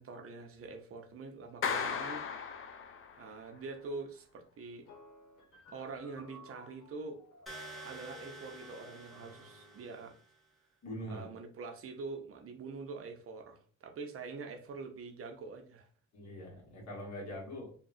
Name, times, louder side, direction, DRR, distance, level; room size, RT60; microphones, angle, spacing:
voice 1, 0.0-2.2 3.2-4.9 5.7-7.2 7.8-10.2 11.1-15.9, right 4 dB, 50° right, 0.6 m, -45 dB
Clapping, 1.6-3.4, left 6 dB, 45° left, 0.4 m, -36 dB
sound 1, 4.8-10.1, left 2 dB, 90° left, 1.0 m, -56 dB
sound 2, 7.5-10.4, right 2 dB, ahead, 0.7 m, -50 dB
voice 2, 10.8-11.3 16.1-17.7, equal, 65° left, 1.4 m, -43 dB
2.8 x 2.3 x 2.5 m
cardioid pair, 90°, 30 cm